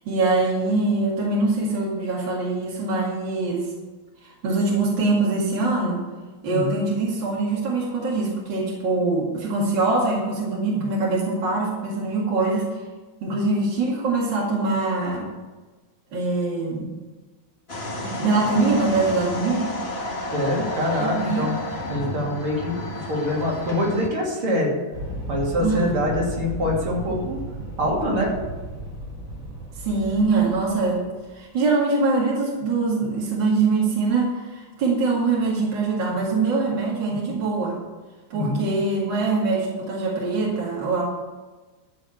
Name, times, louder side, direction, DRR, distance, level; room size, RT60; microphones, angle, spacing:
voice 1, 0.1-3.7 4.2-6.0 6.4-12.7 13.2-15.3 16.1-16.9 18.2-19.7 21.0-21.5 25.6-26.1 29.8-31.0 31.3-37.8 38.3-41.0, right 3 dB, 55° right, -4 dB, 2.9 m, -23 dB
sound 1, 17.7-24.1, left 1 dB, 30° left, 1.7 m, -31 dB
voice 2, 20.3-21.5 21.9-24.8 25.3-27.4 27.8-28.3 38.3-38.7, left 1 dB, 75° right, -3 dB, 3.5 m, -25 dB
sound 2, 24.9-31.4, right 1 dB, 40° right, 3.4 m, -34 dB
14.0 x 5.0 x 8.7 m, 1.3 s
omnidirectional pair, 2.4 m